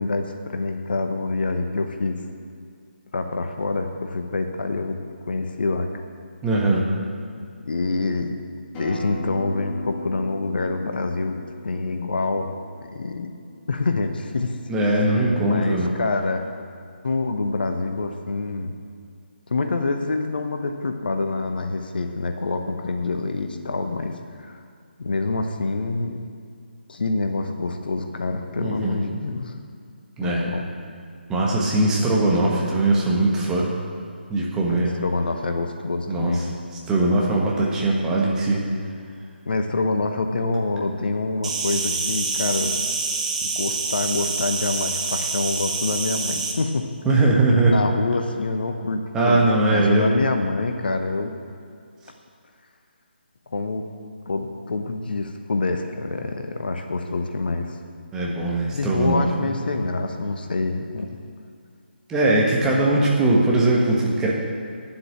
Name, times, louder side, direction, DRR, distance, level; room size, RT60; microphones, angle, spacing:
voice 1, 0.0-2.2 3.1-5.0 5.3-5.9 7.7-8.4 8.8-12.5 12.9-13.3 13.7-14.6 14.9-15.1 15.4-16.5 17.0-18.7 19.5-24.6 25.0-26.2 26.9-29.5 30.2-30.6 34.7-36.5 39.4-42.8 43.4-46.9 47.7-49.4 49.7-51.4 53.5-53.9 54.3-57.8 58.7-61.2, left 3 dB, 55° left, 6 dB, 1.0 m, -26 dB
voice 2, 6.4-6.8 14.7-15.9 28.5-29.0 30.2-30.5 31.3-33.7 34.3-35.0 36.1-36.4 36.9-38.6 47.0-47.7 49.1-50.2 58.1-59.5 62.1-64.3, right 2 dB, 10° right, -3 dB, 1.4 m, -20 dB
Acoustic guitar, 8.7-13.9, equal, 15° left, 1.7 m, -37 dB
Insect, 41.4-46.5, right 4 dB, 35° right, 1.3 m, -26 dB
9.5 x 7.8 x 8.9 m, 2.3 s
figure-of-eight pair, 150°, 6 cm